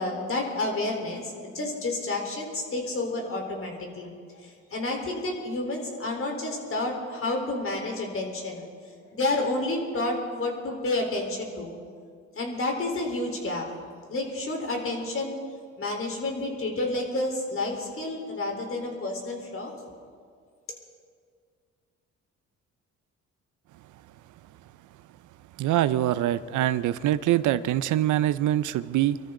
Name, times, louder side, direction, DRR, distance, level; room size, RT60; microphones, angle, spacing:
voice 1, 0.0-8.6 9.1-11.8 12.4-13.7 14.1-15.4 15.8-19.7, left 2 dB, 45° left, 1 dB, 3.9 m, -30 dB
voice 2, 25.6-29.2, right 13 dB, 80° right, 15 dB, 0.6 m, -24 dB
24.5 x 13.5 x 3.8 m, 2.1 s
cardioid pair, 90°, 30 cm